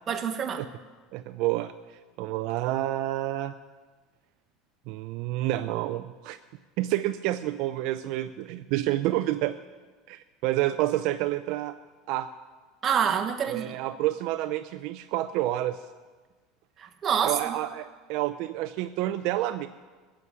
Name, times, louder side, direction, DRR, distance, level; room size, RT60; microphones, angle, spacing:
voice 1, 0.1-0.6 12.8-13.8 16.8-17.5, right 7 dB, 25° right, 6 dB, 1.2 m, -27 dB
voice 2, 1.1-3.5 4.9-6.4 6.8-9.5 10.1-11.7 12.1-12.3 13.5-15.8 17.2-19.7, right 15 dB, 55° right, 9 dB, 0.5 m, -29 dB
15.5 x 7.7 x 9.7 m, 1.4 s
cardioid pair, 160°, 0 cm